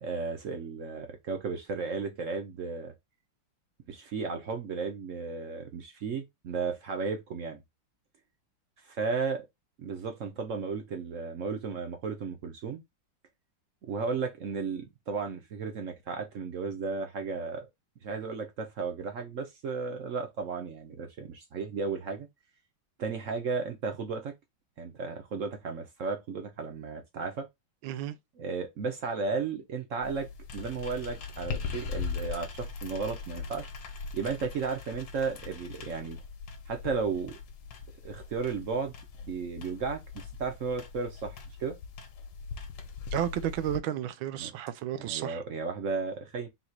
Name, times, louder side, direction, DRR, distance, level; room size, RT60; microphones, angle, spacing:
voice 1, 0.0-2.9 3.9-7.6 8.8-9.5 9.8-12.8 13.9-17.7 18.0-22.3 23.0-24.3 24.8-27.5 28.4-30.3 30.5-33.7 34.1-36.2 36.7-37.4 38.0-38.9 39.2-41.8 44.4-44.5 45.0-46.5, right 4 dB, 60° right, 0.8 m, -34 dB
voice 2, 27.8-28.2 43.1-45.4, right 11 dB, 90° right, 1.4 m, -32 dB
sound 1, 30.0-43.8, left 5 dB, 70° left, 1.4 m, -40 dB
4.1 x 2.4 x 4.4 m
omnidirectional pair, 2.1 m